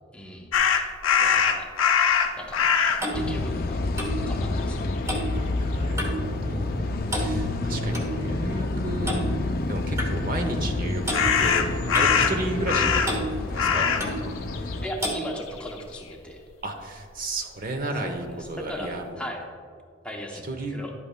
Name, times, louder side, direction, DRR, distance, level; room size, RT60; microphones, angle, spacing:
voice 1, 0.1-0.5 1.2-1.7 2.4-2.6 3.1-3.8 4.3-4.8 14.8-16.4 18.0-18.3 18.7-19.4 20.0-20.9, equal, 5° left, 0 dB, 0.7 m, -37 dB
sound 1, 0.5-3.1 3.9-4.0 4.4-5.3 11.1-13.3 13.5-14.1 14.4-16.0, left 7 dB, 90° left, 0.6 m, -23 dB
Clock, 2.4-6.3 6.6-6.8 7.1-8.1 9.1-9.3 10.0-10.1 11.0-11.3 11.9-12.8 13.0-13.3 14.0-14.2 15.0-15.2, right 1 dB, 15° right, 1.1 m, -31 dB
sound 2, 3.1-14.9, left 2 dB, 45° left, 0.4 m, -29 dB
voice 2, 5.3-9.1 9.7-11.7 12.0-13.1 13.5-13.9 16.6-19.2 20.5-20.8, right 2 dB, 45° right, 4 dB, 0.9 m, -32 dB
11.0 x 8.5 x 2.2 m, 2.1 s
head